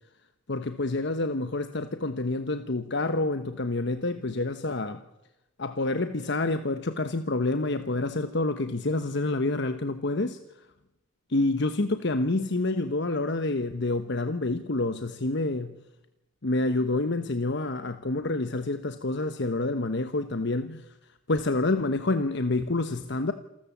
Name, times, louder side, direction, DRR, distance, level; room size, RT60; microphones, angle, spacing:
voice 1, 0.5-5.0 5.6-10.4 11.3-15.8 16.4-20.8 21.3-23.3, left 2 dB, 60° left, 1.1 m, -28 dB
27.5 x 14.0 x 7.4 m
head